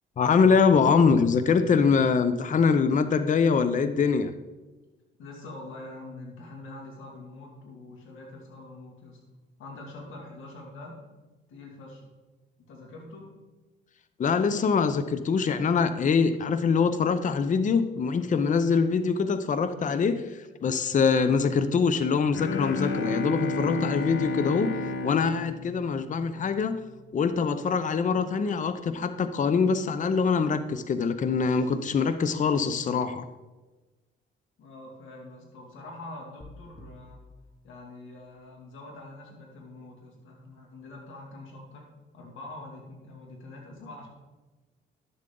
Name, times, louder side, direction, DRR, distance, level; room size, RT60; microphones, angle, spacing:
voice 1, 0.2-4.3 14.2-24.8 25.0-26.8 27.1-33.2, left 5 dB, 40° left, 12 dB, 0.6 m, -24 dB
voice 2, 5.2-9.2 9.6-11.0 11.5-12.0 12.7-13.3 34.6-37.2 37.6-41.9 42.1-44.1, left 2 dB, 85° left, -1 dB, 2.4 m, -44 dB
Bowed string instrument, 22.3-26.6, left 2 dB, 70° left, 0.9 m, -31 dB
sound 1, 36.4-38.6, left 1 dB, 20° left, 1.3 m, -52 dB
11.5 x 7.6 x 3.8 m, 1.2 s
cardioid pair, 90°, 20 cm